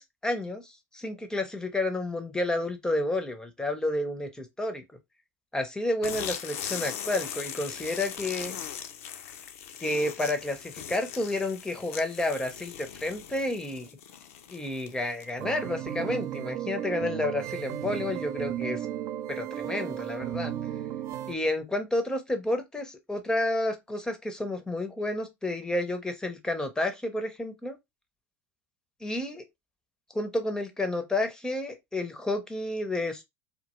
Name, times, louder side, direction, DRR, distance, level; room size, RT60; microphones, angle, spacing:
voice 1, 0.0-4.8 5.5-8.5 9.8-13.9 14.5-18.8 19.3-20.5 21.3-27.8 29.0-29.4 30.1-33.2, left 1 dB, 10° left, 0.5 m, -30 dB
sound 1, 6.0-15.5, left 9 dB, 70° left, 0.4 m, -39 dB
sound 2, 15.4-21.3, right 11 dB, 45° right, 0.3 m, -34 dB
2.2 x 2.1 x 2.9 m
hypercardioid pair, 85°, 8 cm